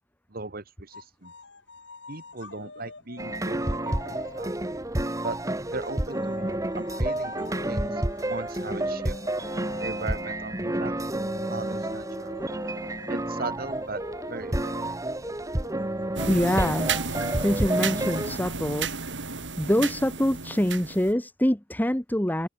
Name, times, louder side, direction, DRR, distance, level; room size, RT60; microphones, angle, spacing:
voice 1, 0.3-1.3 2.1-4.5 5.2-5.4 5.7-6.5 6.8-9.2 9.8-10.9 11.5-12.5 13.1-14.0 14.3-15.0, right 3 dB, 55° right, 1.8 m, -38 dB
sound 1, 0.9-4.8 5.8-17.1, left 3 dB, 80° left, 3.9 m, -46 dB
sound 2, 3.2-18.4, right 1 dB, 20° right, 1.6 m, -30 dB
sound 3, 16.2-21.1, right 4 dB, 80° right, 5.2 m, -32 dB
voice 2, 16.3-16.9 17.4-18.9 19.6-22.5, equal, 10° left, 1.5 m, -25 dB
head